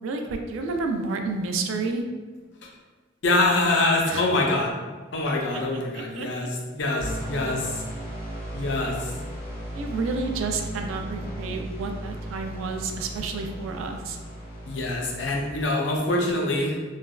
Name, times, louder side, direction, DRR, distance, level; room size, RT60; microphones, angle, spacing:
voice 1, 0.0-2.0 4.1-4.3 5.5-5.6 5.9-6.5 9.7-14.2, right 3 dB, 85° right, 4 dB, 0.3 m, -30 dB
voice 2, 3.2-4.7 5.1-6.5 6.8-7.8 8.5-9.1 14.7-16.8, left 2 dB, 65° left, 0 dB, 0.5 m, -24 dB
sound 1, 7.0-15.5, right 1 dB, 45° left, 0.9 m, -36 dB
3.2 x 2.2 x 2.2 m, 1.4 s
head